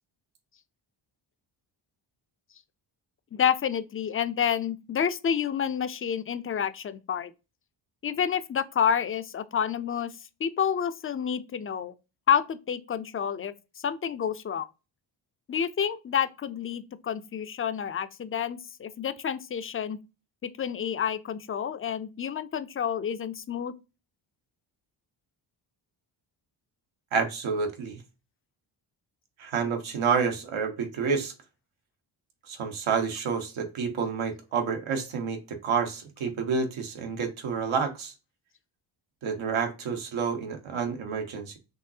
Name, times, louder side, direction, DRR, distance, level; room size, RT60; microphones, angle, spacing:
voice 1, 3.3-7.3 8.0-10.1 10.4-11.9 12.3-14.7 15.5-20.0 20.4-23.7, left 8 dB, 30° left, 0.4 m, -29 dB
voice 2, 27.1-28.0 29.4-31.3 32.5-38.1 39.2-41.6, right 5 dB, 75° right, 1.2 m, -29 dB
5.4 x 3.1 x 2.7 m
cardioid pair, 90°, 48 cm